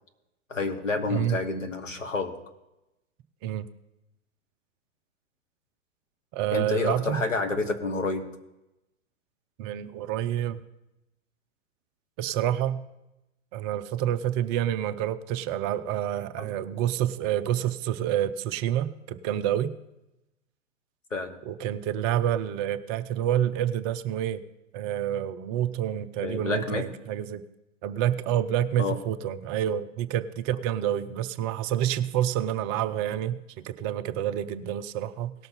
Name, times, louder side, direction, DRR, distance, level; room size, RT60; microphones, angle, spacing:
voice 1, 0.5-2.4 6.5-8.3 16.4-16.5 21.1-21.4 26.2-26.8 28.8-29.0, left 3 dB, 85° left, 4 dB, 1.7 m, -29 dB
voice 2, 6.3-7.2 9.6-10.6 12.2-12.8 13.5-19.7 21.5-24.4 24.7-27.4 27.8-35.3, right 11 dB, 20° right, 10 dB, 0.4 m, -28 dB
18.0 x 6.6 x 4.0 m, 0.91 s
figure-of-eight pair, 110°, 37 cm